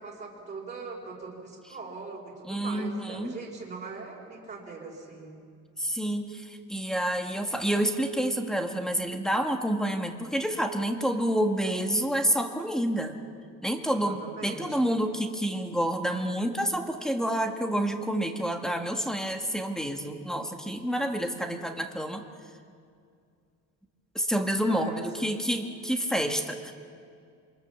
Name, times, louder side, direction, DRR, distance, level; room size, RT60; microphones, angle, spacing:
voice 1, 0.0-5.4 13.9-14.9 24.6-25.0, right 4 dB, 25° right, -3 dB, 4.3 m, -41 dB
voice 2, 2.5-3.4 5.8-13.2 13.6-22.2 24.2-26.7, equal, ahead, 5 dB, 1.6 m, -28 dB
27.0 x 23.5 x 7.2 m, 2.3 s
cardioid pair, 145°, 32 cm